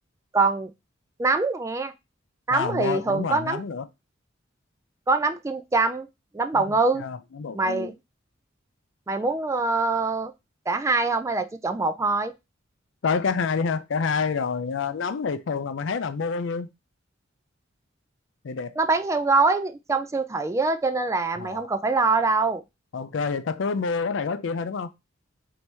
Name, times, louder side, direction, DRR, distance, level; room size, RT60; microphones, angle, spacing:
voice 1, 0.3-0.7 1.2-1.9 2.5-3.6 5.1-6.1 6.3-7.0 7.5-7.9 9.1-10.3 10.7-12.3 18.8-22.6, right 3 dB, 15° right, 0.3 m, -24 dB
voice 2, 2.5-3.9 6.5-7.9 13.0-16.7 18.4-18.8 21.4-21.7 22.9-24.9, left 5 dB, 65° left, 0.4 m, -28 dB
3.3 x 2.8 x 4.4 m
head